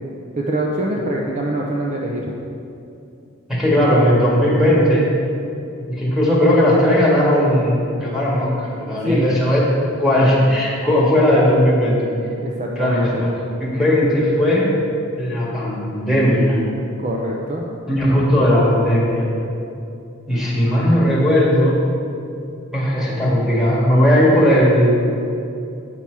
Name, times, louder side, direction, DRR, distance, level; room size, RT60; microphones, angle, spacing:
voice 1, 0.4-2.3 9.1-9.3 12.4-13.2 17.0-17.6, right 1 dB, 35° right, -2 dB, 0.6 m, -24 dB
voice 2, 3.5-5.1 5.9-9.6 10.0-12.0 12.8-13.3 13.6-14.7 15.2-16.6 17.9-19.2 20.3-21.8 22.7-24.9, equal, ahead, -7 dB, 1.7 m, -17 dB
8.4 x 5.9 x 4.6 m, 2.7 s
head